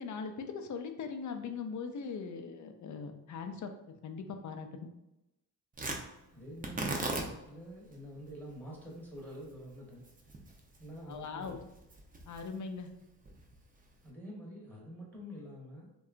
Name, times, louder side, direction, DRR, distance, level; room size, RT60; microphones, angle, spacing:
voice 1, 0.0-3.7 4.0-4.9 11.1-11.6 12.3-12.9, left 5 dB, 45° left, 6 dB, 0.4 m, -40 dB
Tearing, 5.7-14.1, right 2 dB, 20° right, 0.5 m, -42 dB
voice 2, 6.3-10.0 10.8-11.6 14.0-15.9, equal, 5° left, -4 dB, 0.8 m, -47 dB
2.7 x 2.3 x 2.4 m, 0.91 s
cardioid pair, 65°, 41 cm